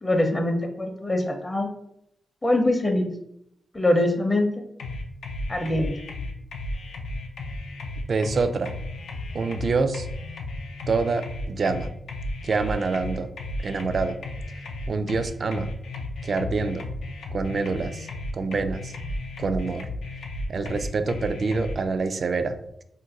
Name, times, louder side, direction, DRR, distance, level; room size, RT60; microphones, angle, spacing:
voice 1, 0.0-1.7 2.4-3.1 3.7-4.6 5.5-5.9, left 1 dB, 25° left, 4 dB, 0.6 m, -23 dB
sound 1, 4.8-21.8, left 2 dB, 80° left, 0.4 m, -34 dB
voice 2, 8.1-8.7 9.3-10.1 10.9-11.9 12.4-13.3 13.6-14.2 14.5-14.6 14.9-15.7 16.2-16.9 17.3-18.1 18.3-18.9 19.4-19.9 20.5-22.8, right 4 dB, 55° right, 9 dB, 0.3 m, -26 dB
2.5 x 2.2 x 4.0 m, 0.76 s
cardioid pair, 60°, 0 cm